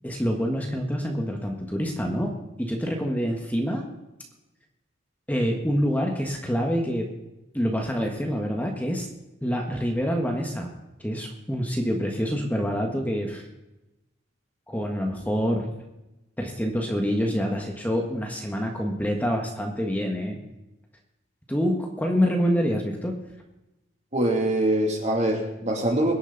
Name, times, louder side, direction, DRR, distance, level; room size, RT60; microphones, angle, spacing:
voice 1, 0.0-2.3 2.6-3.8 5.3-7.1 7.5-9.1 9.4-10.7 11.0-13.4 14.7-15.7 16.4-20.4 21.5-23.1, equal, 10° left, 1 dB, 1.4 m, -26 dB
voice 2, 24.1-26.1, right 1 dB, 35° right, 1 dB, 2.7 m, -23 dB
23.0 x 10.5 x 4.0 m, 0.98 s
head